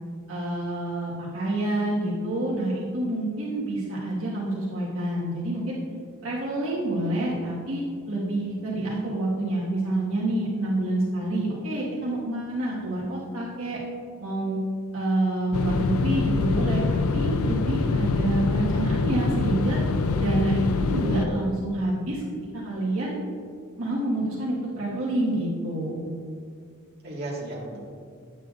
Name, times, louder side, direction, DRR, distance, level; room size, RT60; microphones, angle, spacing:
voice 1, 0.3-5.8 6.2-13.8 14.2-14.6 14.9-19.8 20.2-22.2 22.6-23.1 23.8-26.0, right 1 dB, 70° right, -6 dB, 1.5 m, -27 dB
sound 1, 15.5-21.3, left 3 dB, 75° left, 0.4 m, -25 dB
voice 2, 20.1-20.7 21.0-21.4 27.0-27.8, right 2 dB, 50° right, -5 dB, 1.7 m, -36 dB
8.9 x 8.2 x 2.4 m, 2.2 s
head